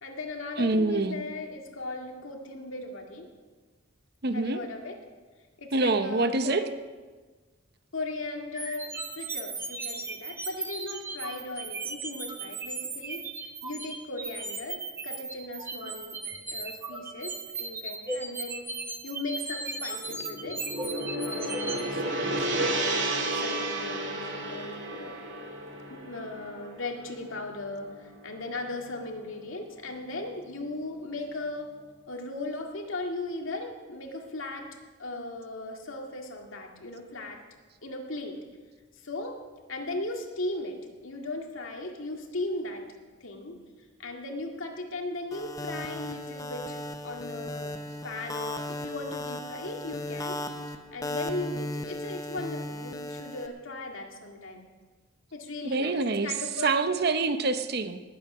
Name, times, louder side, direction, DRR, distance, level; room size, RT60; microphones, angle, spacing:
voice 1, 0.0-3.3 4.3-5.0 5.6-6.7 7.9-13.2 13.6-16.2 16.5-18.7 19.0-22.8 23.4-25.1 25.9-31.7 32.1-34.7 35.0-37.4 37.8-38.4 38.9-39.4 39.7-42.8 43.2-43.6 44.0-46.8 47.0-47.8 48.0-50.4 50.9-54.7 55.3-56.8, left 2 dB, 80° left, 2 dB, 2.1 m, -37 dB
voice 2, 0.6-1.2 4.2-4.6 5.7-6.6 55.6-56.3 56.6-58.0, right 3 dB, 50° right, 10 dB, 0.8 m, -26 dB
sound 1, 8.5-21.8, right 3 dB, 10° right, 1.1 m, -36 dB
Gong, 20.0-28.4, right 1 dB, 65° right, 1.9 m, -32 dB
sound 2, 45.3-53.5, left 1 dB, 15° left, 0.7 m, -36 dB
19.5 x 8.4 x 6.2 m, 1.4 s
head